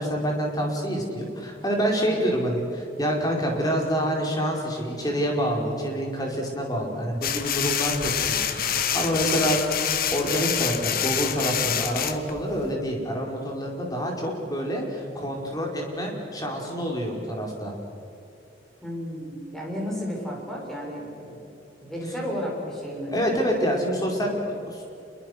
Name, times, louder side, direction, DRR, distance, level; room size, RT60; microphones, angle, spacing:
voice 1, 0.0-9.7 10.1-17.7 23.1-24.8, equal, 20° left, 0 dB, 4.7 m, -27 dB
sound 1, 7.2-12.7, left 9 dB, 55° left, 1.4 m, -27 dB
voice 2, 18.8-21.4 21.8-23.1, equal, ahead, -3 dB, 6.6 m, -33 dB
28.5 x 22.5 x 6.5 m, 2.8 s
head